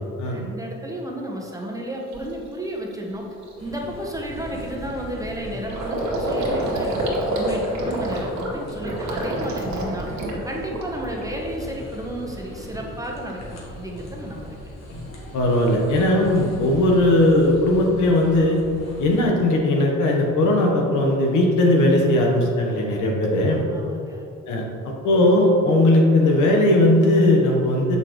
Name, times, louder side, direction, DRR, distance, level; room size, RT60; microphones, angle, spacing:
voice 1, 0.2-3.2 3.6-10.1 10.4-14.7 23.7-24.3, right 1 dB, 10° right, -1 dB, 1.0 m, -32 dB
Gurgling, 1.5-1.6 2.1-2.4 2.8-2.9 3.2-11.2 11.6-12.2, right 1 dB, 70° right, 1.5 m, -28 dB
sound 1, 3.6-19.2, left 1 dB, 60° left, 1.4 m, -39 dB
voice 2, 15.3-18.6 19.0-23.6 24.5-24.6 25.0-28.0, left 1 dB, 75° left, 0 dB, 1.3 m, -18 dB
6.7 x 5.7 x 3.2 m, 2.5 s
cardioid pair, 90°, 30 cm